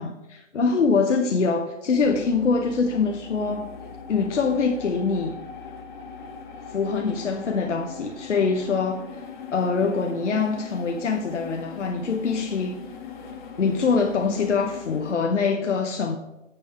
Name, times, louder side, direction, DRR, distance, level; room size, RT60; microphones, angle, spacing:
voice 1, 0.0-3.7 4.1-5.4 6.7-9.0 9.5-12.8 13.6-16.2, left 4 dB, 65° left, 4 dB, 0.9 m, -24 dB
sound 1, 2.0-15.1, left 5 dB, 35° left, 1.2 m, -40 dB
8.7 x 7.3 x 4.6 m, 1.0 s
figure-of-eight pair, 125°, 39 cm